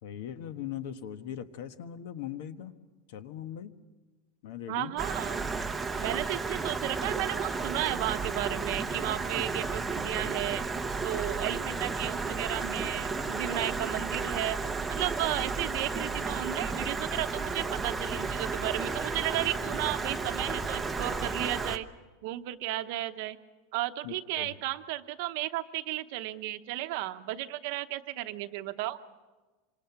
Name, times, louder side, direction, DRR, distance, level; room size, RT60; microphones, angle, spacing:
voice 1, 0.0-2.7 3.1-3.7 4.4-4.9 24.0-24.6, left 10 dB, 60° left, 10 dB, 1.2 m, -40 dB
voice 2, 4.7-5.4 6.0-10.6 11.0-14.6 14.9-21.9 22.2-23.4 23.7-29.0, right 15 dB, 50° right, 10 dB, 0.9 m, -34 dB
Stream, 5.0-21.8, right 4 dB, 5° right, 0.7 m, -33 dB
26.5 x 26.0 x 6.0 m, 1.2 s
supercardioid pair, 180°, 0 cm